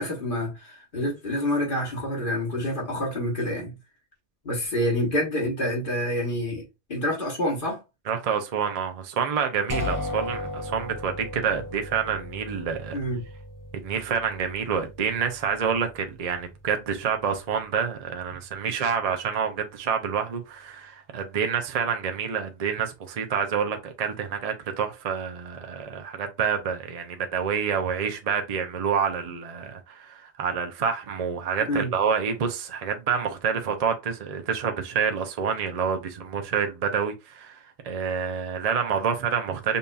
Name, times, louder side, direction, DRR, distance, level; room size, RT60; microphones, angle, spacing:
voice 1, 0.0-3.7 4.4-6.6 6.9-7.8 12.9-13.2 31.6-31.9, left 1 dB, 55° left, 1.4 m, -27 dB
voice 2, 8.1-13.0 13.7-39.8, right 6 dB, 45° right, 0.6 m, -28 dB
sound 1, 9.7-19.5, left 2 dB, 35° left, 0.3 m, -38 dB
5.3 x 2.7 x 2.2 m
omnidirectional pair, 1.1 m